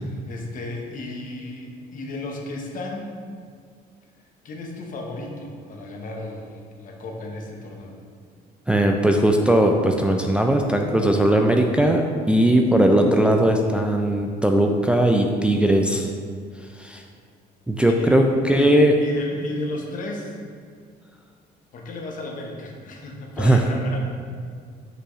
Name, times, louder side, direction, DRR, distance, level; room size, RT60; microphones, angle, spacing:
voice 1, 0.3-3.2 4.4-8.0 17.8-20.4 21.7-24.0, left 2 dB, 50° left, 1 dB, 1.0 m, -34 dB
voice 2, 8.7-16.1 16.8-17.0 17.7-18.9 23.4-23.6, right 1 dB, 5° right, 2 dB, 0.4 m, -19 dB
6.0 x 5.7 x 3.1 m, 2.1 s
cardioid pair, 110°, 17 cm